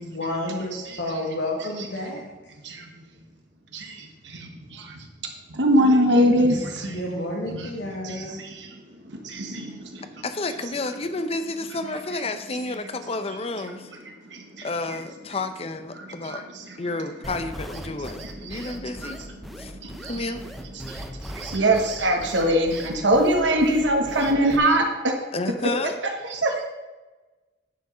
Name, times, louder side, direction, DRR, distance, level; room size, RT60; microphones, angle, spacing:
voice 1, 0.0-2.3 6.9-8.3, left 1 dB, 75° left, -3 dB, 1.7 m, -30 dB
voice 2, 2.6-3.1 3.7-4.5 5.5-7.0 7.5-7.7 8.0-10.2 14.3-14.7 16.0-16.8 18.2-19.1 19.5-20.2 20.8-25.1 26.3-26.6, right 1 dB, 85° right, 2 dB, 1.5 m, -23 dB
voice 3, 10.2-13.9 14.6-16.4 16.8-19.2 19.6-19.8 20.1-20.4 25.3-26.0, left 2 dB, 35° left, 9 dB, 0.7 m, -31 dB
sound 1, 17.2-24.6, equal, ahead, 0.7 m, -39 dB
9.9 x 5.1 x 5.5 m, 1.2 s
head